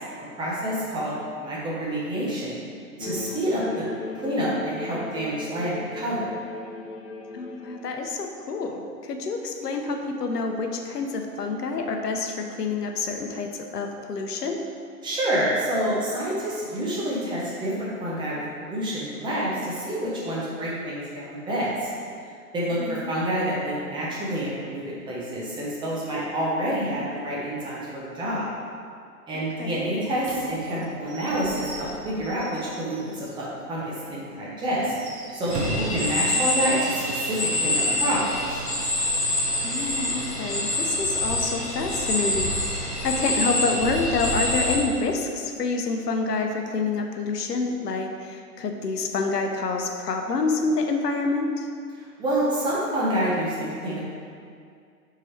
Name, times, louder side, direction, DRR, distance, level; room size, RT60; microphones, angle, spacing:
voice 1, 0.4-1.1 1.4-2.6 3.0-3.9 4.2-6.3 15.0-21.9 22.2-28.5 29.3-34.9 35.3-38.6 51.9-54.0, right 1 dB, 10° right, -7 dB, 0.7 m, -28 dB
sound 1, 3.0-8.1, left 3 dB, 40° left, 0.6 m, -37 dB
voice 2, 7.3-14.6 22.8-23.1 29.3-29.9 39.6-51.7, left 3 dB, 80° left, 4 dB, 0.8 m, -28 dB
Slam / Squeak / Wood, 30.2-33.4 33.8-33.9 34.2-34.3 34.8-36.1, right 2 dB, 35° right, 1.0 m, -36 dB
sound 2, 35.5-44.8, left 1 dB, 15° left, 1.3 m, -26 dB
6.1 x 3.8 x 4.3 m, 2.3 s
hypercardioid pair, 125°, 48 cm